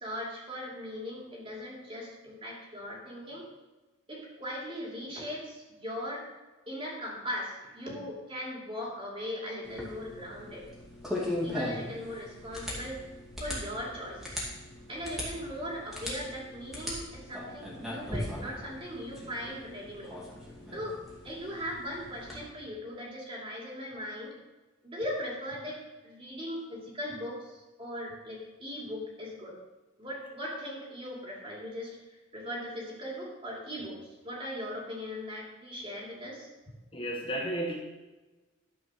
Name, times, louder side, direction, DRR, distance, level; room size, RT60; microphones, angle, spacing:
voice 1, 0.0-3.5 4.1-6.3 6.7-10.6 11.4-13.0 13.4-14.4 14.9-20.1 20.7-24.3 24.8-29.5 30.0-31.9 32.3-36.5, equal, 25° right, -3 dB, 2.8 m, -39 dB
sound 1, 9.6-22.4, left 1 dB, ahead, 2.4 m, -39 dB
voice 2, 36.9-37.7, right 1 dB, 25° left, -1 dB, 1.2 m, -32 dB
12.5 x 5.2 x 6.2 m, 1.1 s
head